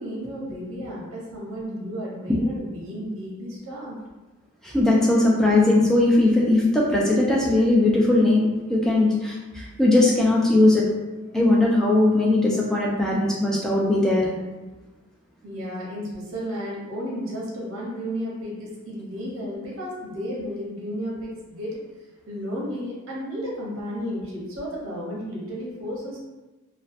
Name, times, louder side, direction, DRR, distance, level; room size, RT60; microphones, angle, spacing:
voice 1, 0.0-4.0 15.4-21.8 22.3-26.2, equal, 70° right, -4 dB, 0.7 m, -33 dB
voice 2, 4.6-10.9 11.3-14.3, left 2 dB, 5° left, -5 dB, 0.3 m, -19 dB
2.6 x 2.1 x 2.4 m, 1.2 s
head